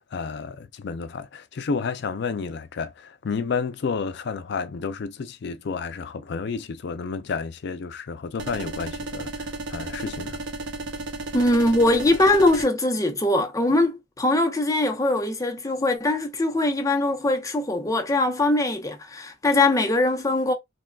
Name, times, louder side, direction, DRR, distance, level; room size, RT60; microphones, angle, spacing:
voice 1, 0.0-10.4, left 5 dB, 60° left, 0.4 m, -31 dB
sound 1, 8.4-12.7, right 2 dB, 70° right, 0.6 m, -33 dB
voice 2, 11.3-20.5, left 2 dB, 15° left, 0.7 m, -22 dB
3.6 x 2.2 x 2.2 m
head